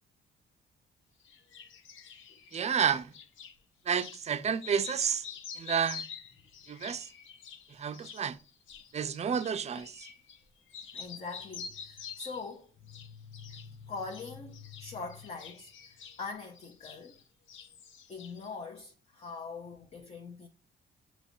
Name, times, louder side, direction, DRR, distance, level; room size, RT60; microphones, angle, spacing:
sound 1, 1.2-3.5 4.0-4.2 4.5-10.4 10.7-12.5 12.9-13.7 14.0-17.2 17.5-18.5, left 6 dB, 80° left, 0.7 m, -47 dB
voice 1, 2.5-3.1 3.9-5.2 5.6-6.0 6.7-7.1 7.8-8.4 8.9-10.1, right 7 dB, 35° right, 0.4 m, -30 dB
voice 2, 10.9-17.2 18.1-20.5, left 4 dB, 35° left, 0.7 m, -43 dB
6.4 x 3.1 x 2.6 m
cardioid pair, 90°, 20 cm